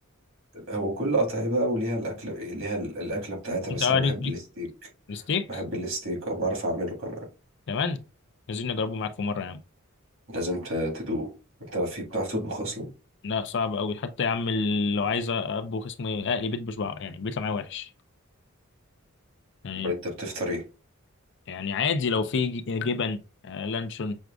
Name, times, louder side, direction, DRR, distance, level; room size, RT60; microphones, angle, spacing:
voice 1, 0.5-4.9 5.5-7.2 10.3-11.3 11.6-12.9 19.8-20.6, right 1 dB, 65° right, 1.9 m, -30 dB
voice 2, 3.7-4.3 5.1-5.5 7.7-8.1 8.5-9.6 13.2-17.9 19.6-19.9 21.5-23.2 23.4-24.2, left 5 dB, 60° left, 0.5 m, -28 dB
6.2 x 2.4 x 2.3 m
head